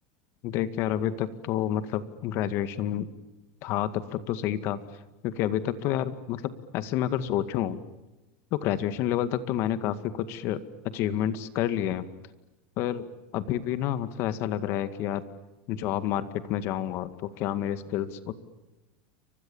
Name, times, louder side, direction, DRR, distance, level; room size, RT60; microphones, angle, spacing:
voice 1, 0.4-3.1 3.6-4.8 5.2-7.8 8.5-10.6 10.9-12.1 12.8-13.0 13.3-15.2 15.7-18.3, left 11 dB, 50° left, 12 dB, 2.0 m, -29 dB
29.5 x 25.0 x 7.2 m, 1.0 s
supercardioid pair, 130°, 6 cm